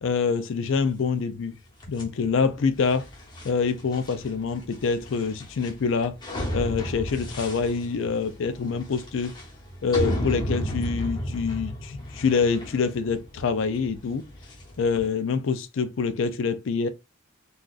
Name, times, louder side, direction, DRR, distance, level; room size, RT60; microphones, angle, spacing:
voice 1, 0.0-1.6 1.9-3.1 3.4-6.2 6.5-9.4 9.8-14.3 14.8-16.9, left 5 dB, 65° left, 0.4 m, -26 dB
sound 1, 1.8-15.1, equal, 20° left, 0.9 m, -34 dB
3.8 x 2.4 x 2.4 m
head